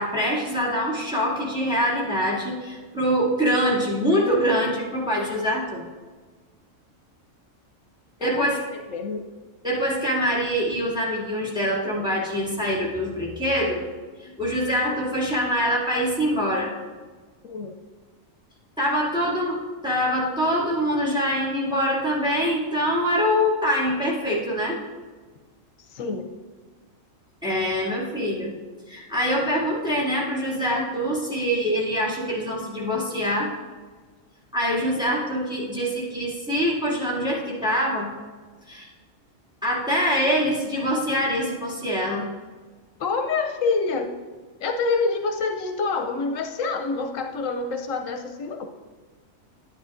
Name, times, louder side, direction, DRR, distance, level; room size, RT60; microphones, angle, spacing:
voice 1, 0.0-5.8 8.2-8.6 9.6-13.8 14.2-16.7 18.8-24.8 27.4-28.5 28.9-33.5 34.5-38.1 38.7-38.9 39.6-42.2, equal, 5° right, -6 dB, 2.3 m, -24 dB
voice 2, 8.2-9.2 17.4-17.8 25.8-26.3 43.0-44.1 44.6-48.7, left 4 dB, 80° left, 5 dB, 1.0 m, -27 dB
10.5 x 10.5 x 2.5 m, 1.4 s
omnidirectional pair, 1.3 m